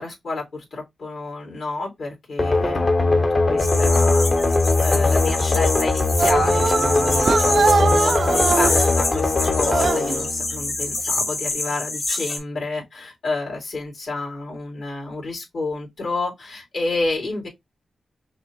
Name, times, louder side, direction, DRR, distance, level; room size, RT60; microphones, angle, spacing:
voice 1, 0.0-4.3 4.8-17.5, left 3 dB, 70° left, 2.9 m, -30 dB
sound 1, 2.4-11.1, left 3 dB, 45° left, 0.8 m, -20 dB
sound 2, 3.6-12.4, left 2 dB, 85° left, 2.5 m, -27 dB
sound 3, 6.2-8.9 9.6-10.2, right 5 dB, 60° right, 0.3 m, -22 dB
5.9 x 2.6 x 3.0 m
cardioid pair, 70°, 0 cm